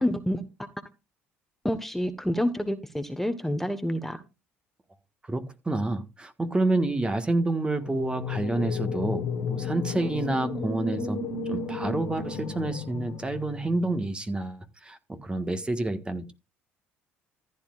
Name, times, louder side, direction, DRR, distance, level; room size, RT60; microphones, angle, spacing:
voice 1, 0.0-0.4 1.6-4.2, equal, 5° left, 1.2 m, -28 dB
voice 2, 5.3-11.2 11.5-16.3, right 2 dB, 20° right, 1.5 m, -28 dB
sound 1, 7.8-14.0, left 5 dB, 70° left, 1.3 m, -33 dB
14.5 x 9.3 x 2.4 m
hypercardioid pair, 65°, 5 cm